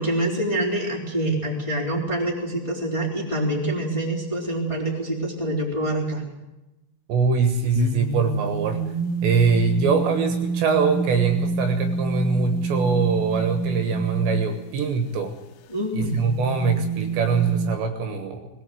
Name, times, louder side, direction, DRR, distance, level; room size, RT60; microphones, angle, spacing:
voice 1, 0.0-6.2 15.7-16.2, right 1 dB, 5° left, -3 dB, 3.2 m, -26 dB
voice 2, 7.1-8.8 9.2-15.3 16.0-18.5, right 5 dB, 70° right, 6 dB, 3.4 m, -23 dB
sound 1, 7.7-15.1 16.0-17.8, right 3 dB, 80° left, 3.6 m, -28 dB
21.0 x 17.5 x 7.8 m, 1.0 s
omnidirectional pair, 5.6 m